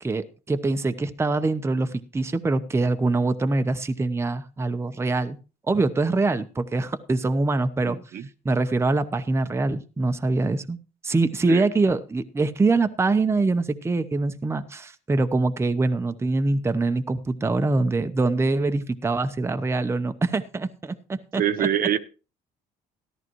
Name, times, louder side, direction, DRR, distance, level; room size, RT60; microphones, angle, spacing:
voice 1, 0.0-5.4 5.7-10.8 11.0-21.7, right 3 dB, 15° right, 0.8 m, -24 dB
voice 2, 7.8-8.3 11.5-11.7 21.4-22.0, right 10 dB, 55° right, 1.0 m, -25 dB
14.0 x 12.0 x 3.1 m
cardioid pair, 110°, 17 cm